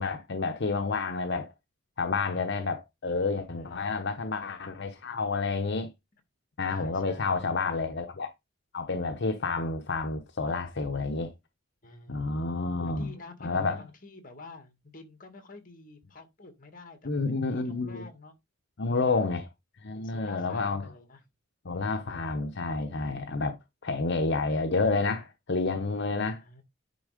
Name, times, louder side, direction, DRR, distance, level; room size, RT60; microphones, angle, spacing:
voice 1, 0.0-1.5 2.0-5.9 6.6-8.3 8.7-11.3 12.1-13.1 13.4-13.8 17.0-18.0 18.8-19.5 19.8-20.8 21.6-23.6 23.8-26.4, left 3 dB, 60° left, 0.9 m, -29 dB
voice 2, 3.5-3.9 5.0-5.2 6.6-7.6 11.8-12.4 12.8-18.4 18.9-19.3 19.9-21.3 26.3-26.6, left 3 dB, 45° left, 2.2 m, -49 dB
10.5 x 3.5 x 5.0 m
head